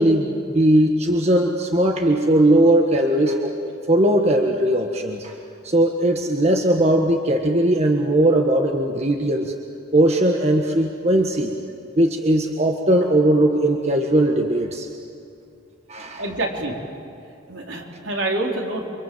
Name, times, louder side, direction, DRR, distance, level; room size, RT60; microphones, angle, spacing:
voice 1, 0.0-3.6 3.9-5.3 5.6-9.5 9.9-11.5 12.0-14.9 15.9-16.2, right 1 dB, 35° right, 2 dB, 1.5 m, -19 dB
voice 2, 16.2-16.8 17.5-18.9, right 2 dB, 70° right, 0 dB, 4.2 m, -26 dB
29.0 x 25.5 x 7.9 m, 2.6 s
head